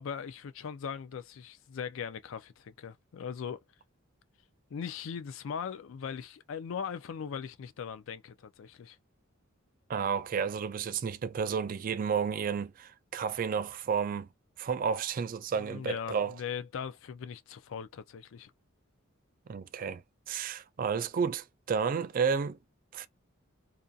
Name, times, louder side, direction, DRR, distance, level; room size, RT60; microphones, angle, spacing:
voice 1, 0.0-3.6 4.7-9.0 15.5-18.5, left 7 dB, 65° left, 0.4 m, -39 dB
voice 2, 9.9-14.3 14.6-16.3 19.5-22.6 22.9-23.1, right 6 dB, 40° right, 0.3 m, -31 dB
2.5 x 2.3 x 2.6 m
head